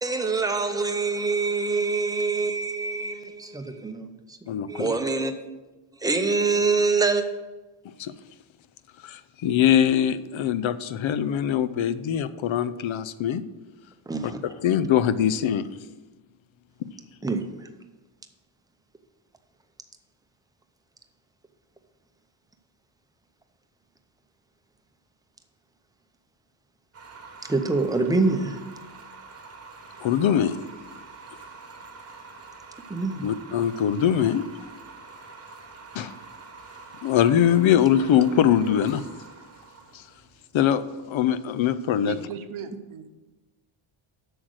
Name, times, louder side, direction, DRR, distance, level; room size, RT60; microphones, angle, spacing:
voice 1, 0.0-4.4 4.7-5.3 6.0-7.2 14.1-14.4 17.2-17.4 27.5-28.6 32.9-33.3, right 3 dB, 10° right, 0.6 m, -25 dB
voice 2, 4.5-4.9 8.0-8.1 9.0-13.4 14.2-15.8 30.0-30.6 33.2-34.5 35.9-36.1 37.0-39.0 39.9-40.0 40.5-42.2, left 9 dB, 70° left, 0.6 m, -22 dB
sound 1, 26.9-41.9, right 4 dB, 30° right, 1.0 m, -46 dB
voice 3, 42.0-43.1, right 6 dB, 75° right, 1.0 m, -37 dB
7.8 x 6.3 x 6.3 m
wide cardioid pair, 160°, 49 cm